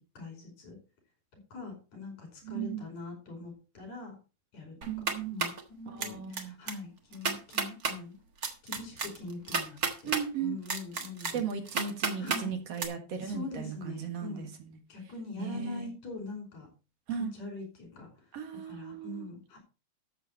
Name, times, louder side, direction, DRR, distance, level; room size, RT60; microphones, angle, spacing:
voice 1, 0.1-0.8 1.5-4.2 4.5-4.8 5.3-8.2 8.6-11.4 12.2-12.5 13.2-14.5 14.9-16.7 17.2-18.1 18.5-19.6, left 3 dB, 75° left, 6.4 m, -43 dB
voice 2, 2.4-2.8 4.9-5.4 5.9-6.6 10.0-10.6 11.3-14.5 15.4-15.9 17.1-17.3 18.3-19.3, right 7 dB, 60° right, 2.7 m, -36 dB
sound 1, 4.8-5.6 6.0-6.4 6.7-6.8 7.1-7.9 8.4-10.2 10.7-12.4 12.8-12.9, right 4 dB, 40° right, 1.5 m, -31 dB
13.0 x 7.5 x 4.1 m
omnidirectional pair, 3.3 m